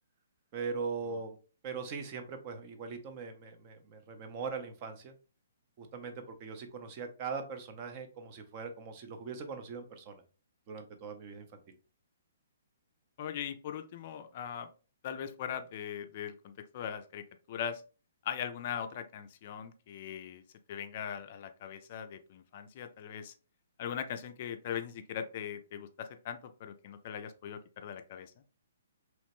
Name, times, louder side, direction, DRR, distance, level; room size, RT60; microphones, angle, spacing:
voice 1, 0.5-1.4 1.6-5.1 5.8-10.2 10.7-11.6, right 5 dB, 35° right, 7 dB, 0.5 m, -40 dB
voice 2, 13.2-14.7 15.0-17.8 18.2-20.4 20.7-23.3 23.8-28.3, left 8 dB, 45° left, 9 dB, 0.3 m, -40 dB
2.9 x 2.1 x 2.9 m, 0.35 s
hypercardioid pair, 150°, 0 cm